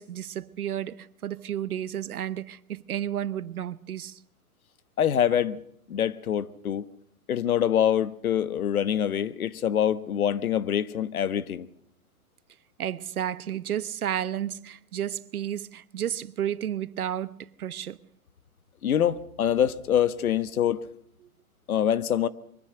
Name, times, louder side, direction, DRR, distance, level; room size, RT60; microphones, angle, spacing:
voice 1, 0.0-4.2 12.8-18.0, right 10 dB, 80° right, 1.0 m, -32 dB
voice 2, 5.0-5.6 5.9-6.8 7.3-11.7 18.8-20.8 21.7-22.3, left 9 dB, 75° left, 1.3 m, -25 dB
23.5 x 15.5 x 7.8 m
hypercardioid pair, 140°, 43 cm